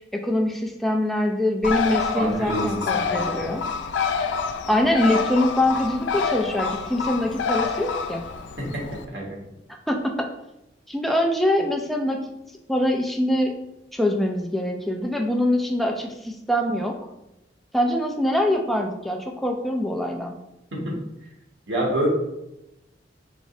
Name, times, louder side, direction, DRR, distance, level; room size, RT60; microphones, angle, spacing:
voice 1, 0.1-3.6 4.7-8.2 9.9-10.3 10.9-12.2 12.7-13.5 13.9-17.0 17.7-20.4, left 1 dB, ahead, 1 dB, 0.4 m, -24 dB
Bird, 1.6-9.0, left 5 dB, 80° left, 0.4 m, -27 dB
voice 2, 2.1-3.4 8.6-8.8 9.1-9.4 20.7-20.9 21.7-22.1, right 1 dB, 90° right, -3 dB, 1.5 m, -27 dB
4.9 x 3.0 x 2.6 m, 0.89 s
head